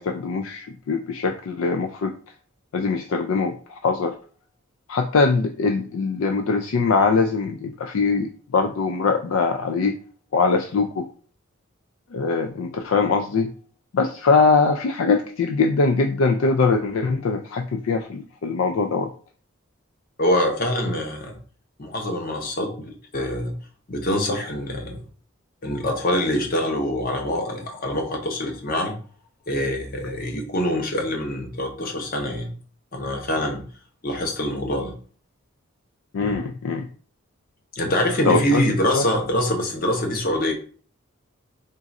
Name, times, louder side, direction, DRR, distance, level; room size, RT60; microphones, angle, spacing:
voice 1, 0.0-2.1 2.7-4.1 4.9-9.9 10.3-11.1 12.1-13.5 13.9-19.1 36.1-36.9 38.2-38.6 38.9-39.0, left 4 dB, 75° left, 5 dB, 0.4 m, -22 dB
voice 2, 20.2-21.3 21.8-23.5 23.9-25.0 25.6-29.0 29.5-32.5 32.9-33.6 34.0-34.9 36.2-36.4 37.7-40.5, left 1 dB, 45° left, 2 dB, 0.8 m, -25 dB
3.8 x 2.4 x 4.1 m, 0.43 s
head